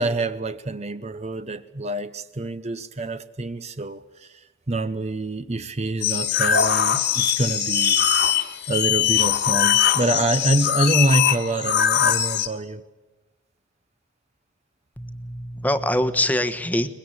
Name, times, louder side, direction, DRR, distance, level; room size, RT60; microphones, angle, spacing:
voice 1, 0.0-12.8, right 2 dB, 35° right, 0.8 m, -26 dB
sound 1, 6.0-12.5, left 9 dB, 55° left, 1.7 m, -21 dB
voice 2, 15.0-16.9, left 1 dB, 10° left, 1.2 m, -24 dB
23.5 x 22.0 x 8.8 m
head